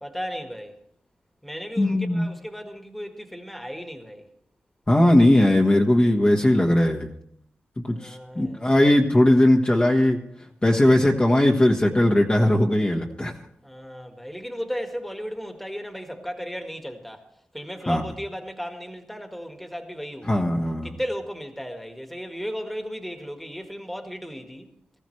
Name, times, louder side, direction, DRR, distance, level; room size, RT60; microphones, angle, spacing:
voice 1, 0.0-0.8 1.4-4.3 7.9-8.8 13.6-17.3 17.5-20.5 20.8-24.7, equal, 5° left, 1.8 m, -35 dB
voice 2, 1.8-2.3 4.9-7.1 7.8-10.2 10.6-13.3 17.9-18.0 20.3-20.9, left 1 dB, 25° left, 1.4 m, -19 dB
18.0 x 14.5 x 3.3 m
cardioid pair, 70°, 5 cm